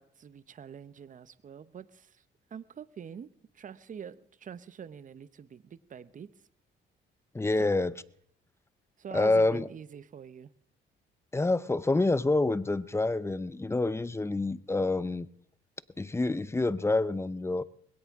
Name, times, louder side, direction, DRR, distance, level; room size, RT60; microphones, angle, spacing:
voice 1, 0.0-2.2 2.5-6.3 7.6-7.8 9.0-10.5, right 8 dB, 40° right, 0.7 m, -45 dB
voice 2, 7.3-7.9 9.1-9.7 11.3-15.3 16.0-17.6, left 2 dB, 15° left, 0.6 m, -27 dB
20.5 x 17.0 x 3.6 m
cardioid pair, 90°, 20 cm